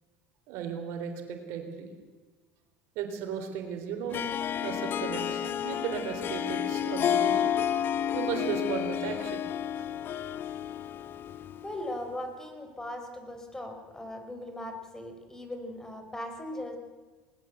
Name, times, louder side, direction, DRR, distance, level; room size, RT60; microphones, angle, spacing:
voice 1, 0.5-1.9 3.0-4.3 4.6-7.6 8.1-9.4, right 7 dB, 70° right, 5 dB, 3.6 m, -35 dB
Harp, 4.1-11.8, left 9 dB, 50° left, 0.9 m, -30 dB
voice 2, 11.6-16.8, left 1 dB, 10° left, 6 dB, 4.7 m, -39 dB
20.0 x 19.5 x 8.0 m, 1.4 s
hypercardioid pair, 80°, 5 cm